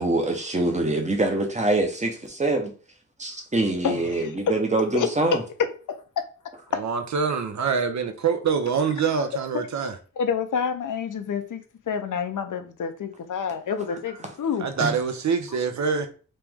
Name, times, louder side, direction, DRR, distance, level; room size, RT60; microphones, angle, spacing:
voice 1, 0.0-2.7 3.2-5.4 14.8-14.9, right 2 dB, 25° right, 0.8 m, -24 dB
voice 2, 3.8-4.5 4.9-5.1 6.2-6.3 6.7-6.8 10.2-14.7, left 7 dB, 85° left, 0.6 m, -28 dB
voice 3, 6.7-9.9 14.6-16.1, right 6 dB, 65° right, 0.6 m, -25 dB
3.1 x 3.0 x 3.5 m
wide cardioid pair, 145°, 31 cm